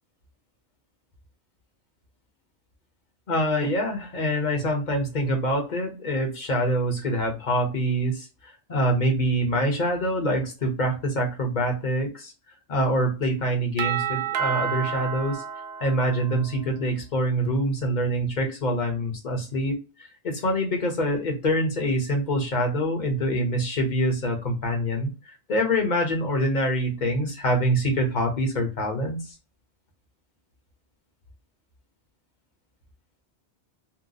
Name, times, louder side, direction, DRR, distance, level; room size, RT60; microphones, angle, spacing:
voice 1, 3.3-8.3 8.7-12.3 12.7-15.4 15.8-29.3, equal, 45° left, 2 dB, 1.1 m, -25 dB
Doorbell, 13.8-16.6, right 8 dB, 70° right, 0.7 m, -30 dB
2.8 x 2.2 x 3.9 m, 0.31 s
omnidirectional pair, 1.1 m